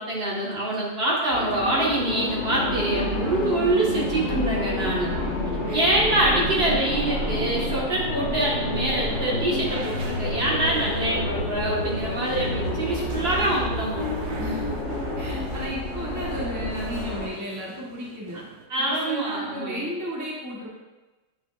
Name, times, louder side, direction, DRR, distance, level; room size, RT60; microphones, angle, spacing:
voice 1, 0.0-5.1 5.7-14.3 18.7-19.9, right 1 dB, 35° right, -5 dB, 1.7 m, -25 dB
sound 1, 1.3-17.3, left 1 dB, 45° left, 1.3 m, -29 dB
voice 2, 4.8-5.4 5.6-5.9 14.4-14.9 15.1-18.4 18.8-20.7, equal, 15° right, -5 dB, 0.8 m, -34 dB
sound 2, 8.7-18.7, right 4 dB, 65° right, 1.2 m, -44 dB
8.6 x 5.7 x 2.5 m, 1.2 s
omnidirectional pair, 2.0 m